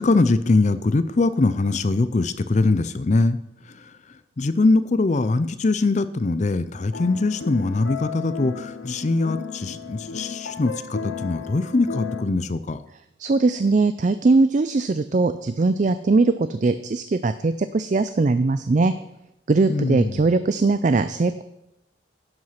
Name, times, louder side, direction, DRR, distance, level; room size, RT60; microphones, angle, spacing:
voice 1, 0.0-3.4 3.7-3.9 4.4-12.8 19.7-20.3, left 3 dB, 35° left, 13 dB, 0.4 m, -22 dB
sound 1, 6.9-12.2, left 5 dB, 70° left, 0.7 m, -34 dB
voice 2, 13.2-18.9 19.5-21.4, right 3 dB, 40° right, 12 dB, 0.4 m, -20 dB
11.5 x 7.9 x 5.8 m, 0.86 s
head